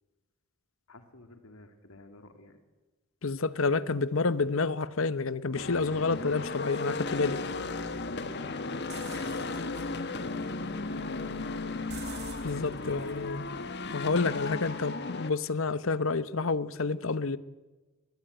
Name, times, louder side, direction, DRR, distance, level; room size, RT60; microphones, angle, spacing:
voice 1, 0.9-2.6 8.9-11.8 12.8-13.2, left 2 dB, 85° left, 2.4 m, -51 dB
voice 2, 3.2-7.4 12.4-13.4 13.9-17.4, left 4 dB, 65° left, 0.9 m, -29 dB
sound 1, 5.5-15.3, left 3 dB, 50° left, 1.5 m, -35 dB
sound 2, 8.9-14.7, right 3 dB, 50° right, 3.0 m, -49 dB
21.5 x 21.0 x 9.3 m
head